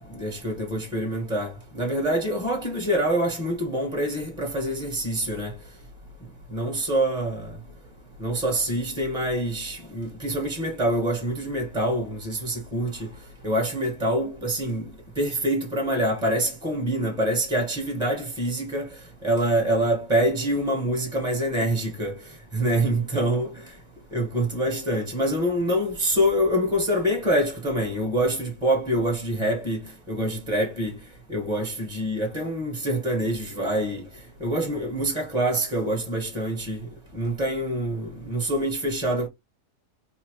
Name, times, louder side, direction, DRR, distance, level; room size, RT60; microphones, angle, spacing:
voice 1, 0.1-5.5 6.5-7.5 8.2-13.1 13.4-14.9 15.2-18.9 19.2-22.2 22.5-23.5 24.1-29.8 30.1-30.9 31.3-34.0 34.4-36.9 37.1-39.3, right 1 dB, 5° right, 1.1 m, -25 dB
4.0 x 2.8 x 3.0 m
omnidirectional pair, 1.7 m